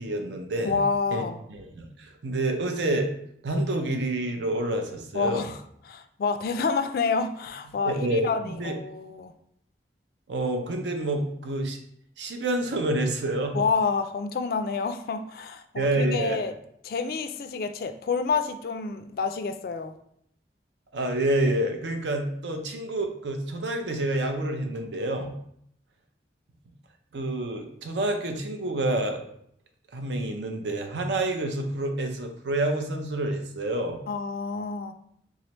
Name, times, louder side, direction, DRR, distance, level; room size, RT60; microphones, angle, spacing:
voice 1, 0.0-0.8 1.1-1.2 1.5-3.1 3.4-5.5 7.8-8.7 10.3-11.8 12.2-13.6 15.8-16.4 20.9-25.3 27.1-29.2 29.9-34.0, right 1 dB, 80° right, 5 dB, 0.6 m, -28 dB
voice 2, 0.6-1.4 5.1-5.5 5.9-9.3 13.5-16.5 16.8-19.9 34.1-34.9, left 5 dB, 55° left, 9 dB, 0.3 m, -28 dB
3.6 x 3.2 x 2.9 m, 0.70 s
head